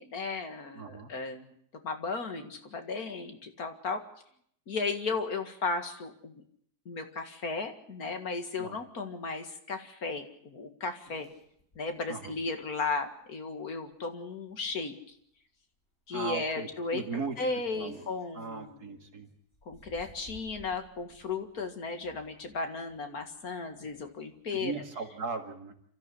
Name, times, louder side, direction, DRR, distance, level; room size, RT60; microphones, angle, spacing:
voice 1, 0.0-1.5 1.8-4.0 4.7-6.4 6.9-11.3 11.8-14.9 16.1-17.0 17.4-18.8 19.7-24.7, left 4 dB, 70° left, 6 dB, 2.4 m, -35 dB
voice 2, 0.7-1.1 8.6-8.8 12.1-12.4 16.1-18.0 18.3-19.3 24.5-25.7, right 4 dB, 75° right, 4 dB, 2.7 m, -38 dB
sound 1, 11.0-11.8 12.2-12.3 12.6-12.7 13.9-14.2 14.5-14.7 15.2-15.3 15.6-15.7 16.1-16.3 16.8-19.1 19.5-24.8, left 3 dB, 40° left, 4.6 m, -56 dB
27.5 x 13.5 x 8.5 m, 0.69 s
omnidirectional pair, 1.6 m